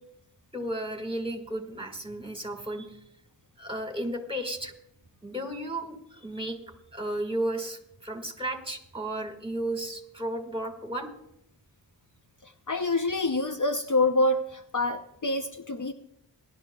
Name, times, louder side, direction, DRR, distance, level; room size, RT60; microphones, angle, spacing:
voice 1, 0.5-3.0 3.6-4.7 5.2-6.6 6.9-11.1, right 1 dB, 10° right, 5 dB, 1.9 m, -33 dB
voice 2, 12.7-15.9, left 2 dB, 45° left, 7 dB, 0.7 m, -26 dB
21.5 x 11.5 x 2.3 m, 0.79 s
wide cardioid pair, 55°, 43 cm